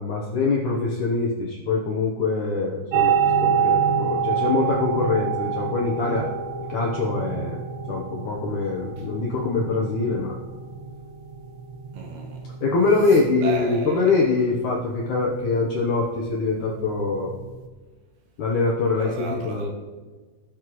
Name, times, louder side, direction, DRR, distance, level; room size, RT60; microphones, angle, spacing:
voice 1, 0.0-3.1 3.4-6.3 6.7-7.6 7.9-10.4 12.6-17.3 18.4-19.7, left 4 dB, 75° left, 1.8 m, -24 dB
sound 1, 2.9-17.7, right 7 dB, 90° right, 3.0 m, -28 dB
voice 2, 11.9-12.5 13.1-14.1 18.9-19.7, right 5 dB, 70° right, 3.0 m, -34 dB
19.0 x 6.7 x 3.1 m
omnidirectional pair, 5.1 m